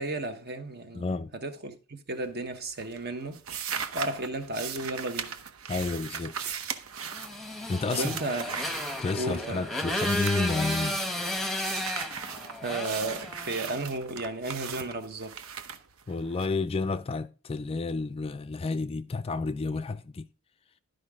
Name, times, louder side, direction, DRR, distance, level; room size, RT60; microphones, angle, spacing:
voice 1, 0.0-3.4 3.9-5.3 7.9-8.5 9.1-9.6 12.6-15.4, right 2 dB, 45° right, 1.1 m, -34 dB
voice 2, 0.9-1.3 5.7-6.5 7.7-8.2 9.0-11.0 16.1-20.3, left 3 dB, 25° left, 0.3 m, -31 dB
sound 1, 2.1-2.5 2.8-9.5 9.9-11.1 11.5-16.5, right 7 dB, 70° right, 0.8 m, -38 dB
Motorcycle, 7.1-13.8, left 1 dB, ahead, 1.0 m, -33 dB
12.0 x 5.1 x 3.6 m
head